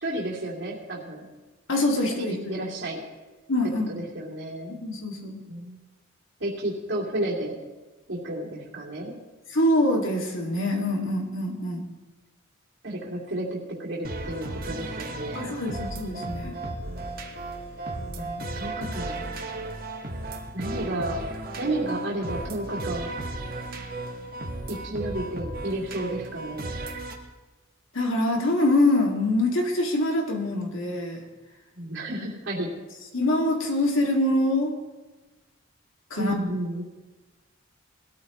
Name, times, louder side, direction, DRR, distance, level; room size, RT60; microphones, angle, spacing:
voice 1, 0.0-1.3 2.0-3.0 3.9-4.7 5.5-5.8 6.4-7.6 8.1-9.2 12.8-15.6 18.1-19.3 20.5-21.3 21.6-23.1 24.7-26.8 31.7-32.7 36.2-36.8, right 1 dB, 65° right, -5 dB, 2.7 m, -32 dB
voice 2, 1.7-2.6 3.5-3.9 4.7-5.4 9.5-11.9 15.3-16.6 27.9-31.2 32.1-32.2 33.1-34.7 36.1-36.3, left 1 dB, 80° left, 1 dB, 2.2 m, -24 dB
sound 1, 14.0-27.1, right 2 dB, 45° right, 1.5 m, -35 dB
20.5 x 13.5 x 3.0 m, 1.2 s
head